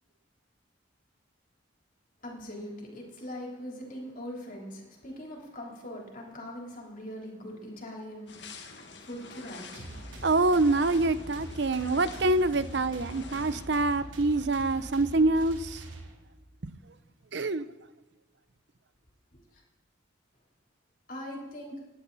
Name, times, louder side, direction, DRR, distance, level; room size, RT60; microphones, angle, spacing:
voice 1, 2.2-10.3 19.3-19.4 21.1-21.8, equal, 45° left, 3.7 m, -42 dB
sound 1, 8.3-13.7, left 3 dB, 60° left, 1.9 m, -47 dB
sound 2, 9.7-16.4, right 1 dB, 75° right, 3.1 m, -43 dB
voice 2, 10.2-15.8 16.6-16.7 17.3-17.7, right 2 dB, 60° right, 0.8 m, -26 dB
28.5 x 11.0 x 4.2 m
head